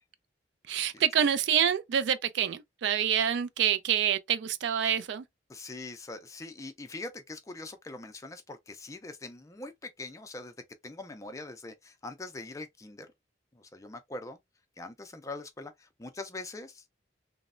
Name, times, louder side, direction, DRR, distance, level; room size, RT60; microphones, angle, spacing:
voice 1, 0.7-5.2, right 9 dB, 70° right, 0.3 m, -27 dB
voice 2, 5.5-10.5 10.8-13.1 13.5-14.4 14.8-16.8, left 2 dB, 15° left, 0.3 m, -42 dB
3.1 x 2.0 x 2.4 m
head